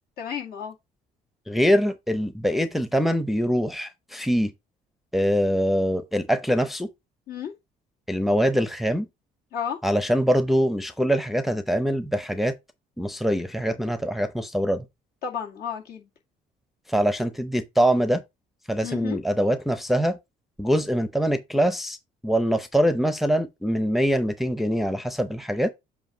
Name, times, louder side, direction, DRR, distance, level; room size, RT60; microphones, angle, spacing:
voice 1, 0.2-0.7 7.3-7.5 9.5-9.8 15.2-16.1 18.8-19.2, left 8 dB, 65° left, 2.1 m, -32 dB
voice 2, 1.5-4.5 5.1-6.9 8.1-9.1 9.8-12.5 13.0-14.8 16.9-18.2 18.7-20.2 20.6-22.0 22.2-25.7, equal, ahead, 0.6 m, -23 dB
7.8 x 2.6 x 4.9 m
cardioid pair, 110°, 17 cm